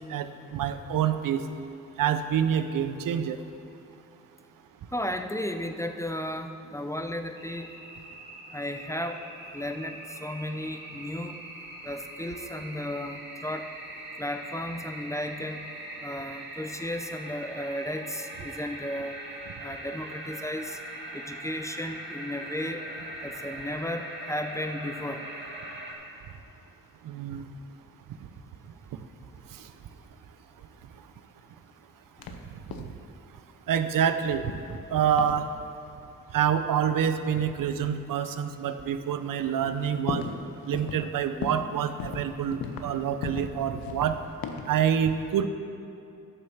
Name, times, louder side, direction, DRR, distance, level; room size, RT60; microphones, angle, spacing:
voice 1, 0.1-1.4 2.0-3.4 27.0-27.5 33.7-34.6 34.9-35.5 36.3-40.2 40.7-44.2 44.7-45.5, right 8 dB, 70° right, 10 dB, 0.6 m, -27 dB
voice 2, 4.9-7.7 8.5-9.2 9.5-11.4 11.8-13.7 14.2-15.7 16.0-19.2 19.6-20.8 21.1-22.8 23.2-25.3, left 1 dB, 10° left, 6 dB, 0.6 m, -34 dB
sound 1, 7.3-25.9, right 1 dB, 30° right, 2.2 m, -41 dB
sound 2, 32.2-32.4 32.7-33.0 34.5-34.8 35.2-35.4 36.8-36.9 37.8-37.9 38.5-38.6 39.1-39.2 39.4-40.4 40.7-41.1 41.4-41.7 42.0-42.9 43.2-43.5 43.8-44.8, left 6 dB, 85° left, 0.8 m, -36 dB
11.0 x 5.5 x 7.1 m, 2.8 s
cardioid pair, 85°, 34 cm